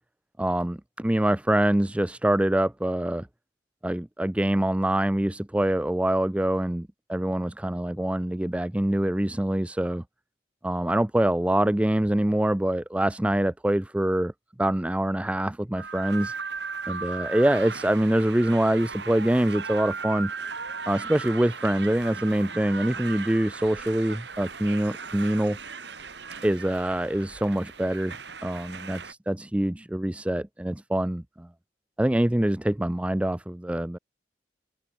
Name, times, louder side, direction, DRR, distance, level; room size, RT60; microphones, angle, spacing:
voice 1, 0.4-3.3 3.8-10.0 10.6-14.3 14.6-16.3 16.9-20.3 20.9-25.6 26.4-28.1 28.4-31.5 32.0-34.0, right 1 dB, 5° right, 0.4 m, -25 dB
sound 1, 15.8-29.1, right 5 dB, 80° right, 4.4 m, -37 dB
open air
head